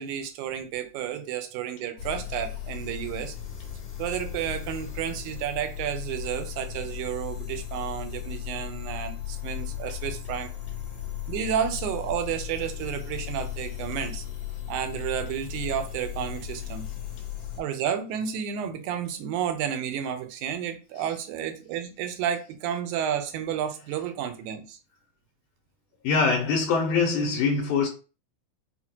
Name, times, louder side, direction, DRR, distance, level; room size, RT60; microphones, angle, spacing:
voice 1, 0.0-3.3 4.0-10.5 11.3-14.2 14.7-16.8 17.6-24.8, right 9 dB, 85° right, 2.0 m, -31 dB
sound 1, 2.0-17.6, left 11 dB, 55° left, 1.9 m, -36 dB
voice 2, 26.0-27.9, left 4 dB, 85° left, 2.1 m, -23 dB
5.8 x 2.2 x 2.8 m
omnidirectional pair, 3.5 m